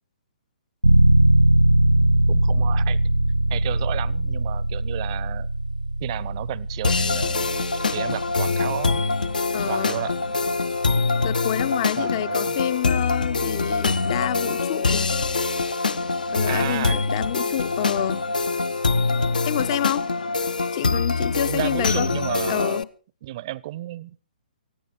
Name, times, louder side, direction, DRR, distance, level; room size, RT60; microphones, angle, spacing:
sound 1, 0.8-11.4, right 1 dB, 85° right, 0.7 m, -21 dB
voice 1, 2.3-3.0 3.5-5.5 6.0-9.1 9.7-10.2 12.0-12.5 16.5-17.0 21.5-22.8 23.2-24.2, right 15 dB, 35° right, 0.7 m, -32 dB
sound 2, 6.8-22.8, left 3 dB, 65° left, 0.9 m, -24 dB
voice 2, 9.5-10.0 11.2-15.1 16.3-18.3 19.4-20.1 20.7-22.1 22.5-22.9, left 11 dB, 35° left, 0.7 m, -28 dB
19.0 x 14.5 x 4.4 m
figure-of-eight pair, 125°, 5 cm